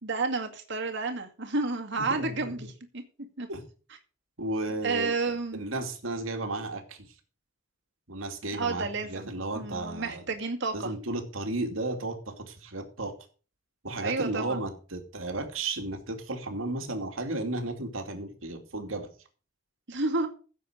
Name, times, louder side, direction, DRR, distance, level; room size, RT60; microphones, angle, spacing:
voice 1, 0.0-3.0 3.4-3.5 4.8-5.6 8.5-10.9 14.0-14.6 19.9-20.3, right 3 dB, 60° right, 4 dB, 2.2 m, -31 dB
voice 2, 2.0-2.7 3.5-3.6 4.4-5.1 5.5-7.1 8.1-10.2 10.7-13.1 13.8-19.1, right 2 dB, 80° right, 5 dB, 2.6 m, -34 dB
15.5 x 7.7 x 5.1 m, 0.38 s
head